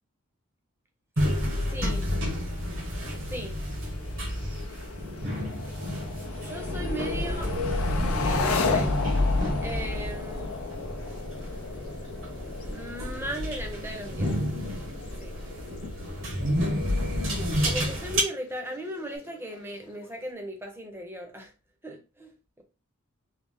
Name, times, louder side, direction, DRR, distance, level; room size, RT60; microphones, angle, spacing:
sound 1, 1.2-18.2, equal, 65° right, 1.1 m, -30 dB
sound 2, 1.5-20.3, left 4 dB, 85° left, 0.5 m, -37 dB
voice 1, 1.6-2.1 3.3-3.6 6.4-9.0 9.6-10.5 12.7-14.3 15.2-15.3 17.6-21.5 21.8-22.6, right 1 dB, 10° right, 0.6 m, -37 dB
3.3 x 2.4 x 3.4 m
head